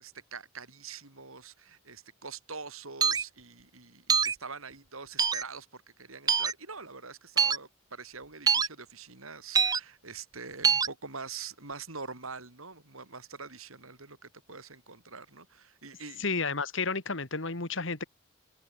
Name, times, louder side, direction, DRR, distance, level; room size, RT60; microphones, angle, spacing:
voice 1, 0.0-16.2, right 5 dB, 80° right, 4.9 m, -44 dB
sound 1, 3.0-3.2 4.1-4.3 5.2-5.4 6.3-6.5 7.4-7.6 8.5-8.7 9.5-9.8 10.6-10.9, right 6 dB, 20° right, 0.4 m, -24 dB
voice 2, 16.2-18.0, left 4 dB, 65° left, 2.2 m, -31 dB
head